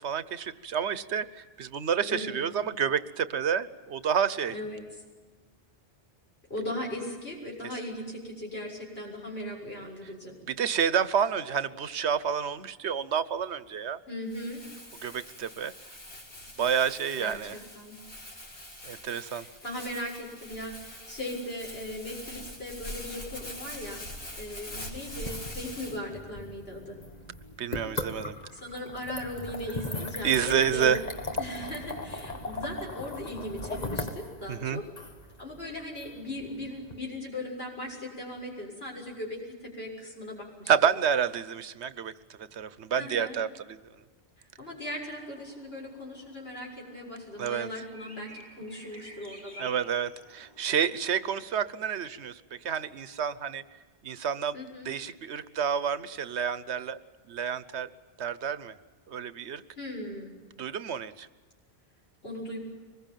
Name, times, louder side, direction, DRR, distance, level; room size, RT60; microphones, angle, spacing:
voice 1, 0.0-4.5 10.5-14.0 15.0-15.7 16.6-17.5 18.8-19.5 27.6-28.3 30.2-31.0 34.5-34.8 40.7-42.1 42.4-43.8 47.4-47.7 49.6-53.6 54.0-54.6 54.8-57.0 57.3-57.9 58.2-58.7 59.1-59.6 60.6-61.3, right 7 dB, 90° right, 15 dB, 1.2 m, -29 dB
voice 2, 2.1-2.5 4.5-5.0 6.5-10.3 14.1-14.6 17.1-18.0 19.3-24.0 24.4-27.0 28.5-30.9 31.4-34.9 35.4-40.7 43.0-43.4 44.4-49.7 54.5-54.9 59.8-60.4 62.2-62.6, left 1 dB, 65° left, -1 dB, 7.2 m, -38 dB
Crumpling crinkling, 14.3-26.0, left 1 dB, 85° left, 4.7 m, -43 dB
sound 1, 25.0-36.9, left 2 dB, 40° left, 1.8 m, -38 dB
sound 2, 44.8-51.4, right 1 dB, 25° right, 6.9 m, -52 dB
24.5 x 21.0 x 9.1 m, 1.4 s
omnidirectional pair, 1.1 m